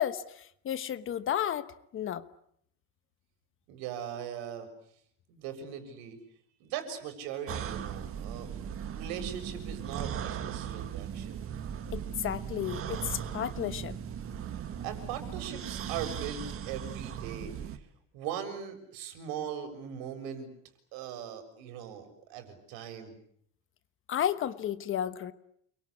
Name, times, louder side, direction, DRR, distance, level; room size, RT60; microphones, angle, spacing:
voice 1, 0.0-2.2 11.9-14.0 24.1-25.3, left 10 dB, 35° left, 13 dB, 1.2 m, -32 dB
voice 2, 3.7-4.7 5.3-6.2 6.6-8.5 8.9-11.5 14.8-17.9 18.1-20.5 20.9-23.2, right 8 dB, 80° right, 7 dB, 6.9 m, -40 dB
sound 1, 7.5-17.8, right 9 dB, 35° right, 1.9 m, -38 dB
29.5 x 23.0 x 8.4 m, 0.69 s
cardioid pair, 175°, 37 cm